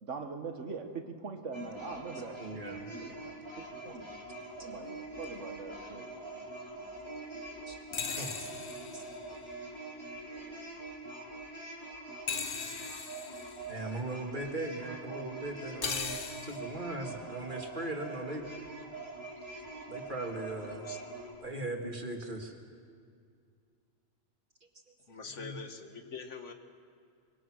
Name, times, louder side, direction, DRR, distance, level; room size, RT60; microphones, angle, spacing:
voice 1, 0.0-4.1 4.6-6.1, right 4 dB, 80° right, 6 dB, 1.7 m, -42 dB
sound 1, 1.5-21.3, right 2 dB, 20° left, 3.6 m, -44 dB
voice 2, 2.4-2.8 4.6-4.7 7.7-7.8 8.0-8.5 8.9-9.0 13.7-18.4 19.9-20.8 21.4-22.5 25.3-25.6, right 2 dB, 45° right, 2 dB, 2.4 m, -39 dB
sound 2, 7.9-9.7 12.3-13.7 15.8-16.8, left 5 dB, 50° left, 1.3 m, -38 dB
voice 3, 20.6-21.0 25.1-26.5, left 4 dB, 80° left, 6 dB, 1.8 m, -44 dB
25.0 x 23.0 x 6.3 m, 2.3 s
omnidirectional pair, 1.2 m